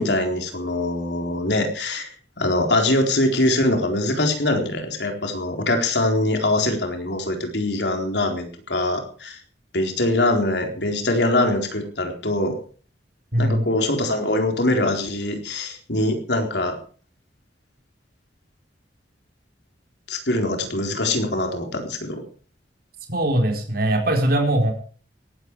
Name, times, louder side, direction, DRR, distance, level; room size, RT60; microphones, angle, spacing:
voice 1, 0.0-2.1 2.4-9.4 9.7-12.5 13.4-16.8 20.1-22.2, left 1 dB, 70° left, 4 dB, 4.1 m, -23 dB
voice 2, 13.3-13.6 23.1-24.7, right 1 dB, 60° right, 3 dB, 4.2 m, -21 dB
17.5 x 14.0 x 4.8 m, 0.41 s
head